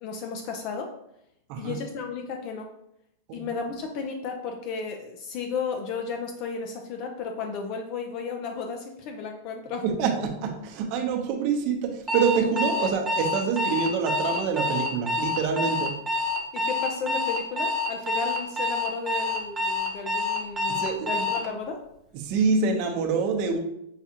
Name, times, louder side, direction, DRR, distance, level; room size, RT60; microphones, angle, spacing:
voice 1, 0.0-0.9 1.6-2.7 3.3-9.8 16.5-21.8, left 5 dB, 50° left, 4 dB, 0.4 m, -34 dB
voice 2, 9.8-16.0 20.7-21.3 22.1-23.6, right 5 dB, 50° right, 3 dB, 0.7 m, -26 dB
Alarm, 12.1-21.5, left 2 dB, 20° right, 0.8 m, -27 dB
5.7 x 2.4 x 2.8 m, 0.80 s
hypercardioid pair, 125°, 0 cm